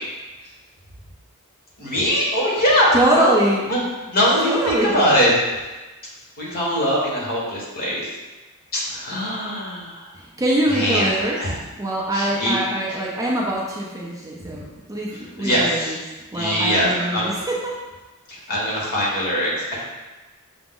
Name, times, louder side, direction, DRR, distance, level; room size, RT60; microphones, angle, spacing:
voice 1, 1.8-3.4 3.7-3.8 4.1-5.4 6.4-8.1 8.7-10.1 10.7-11.5 12.1-12.5 12.9-13.0 14.5-14.6 15.4-15.9 16.3-17.3 18.3-19.8, equal, 45° left, -5 dB, 1.3 m, -22 dB
voice 2, 2.9-3.7 4.4-5.0 10.1-11.4 11.8-16.0 16.3-17.7, right 1 dB, 15° right, -4 dB, 0.5 m, -23 dB
5.9 x 2.0 x 3.7 m, 1.2 s
head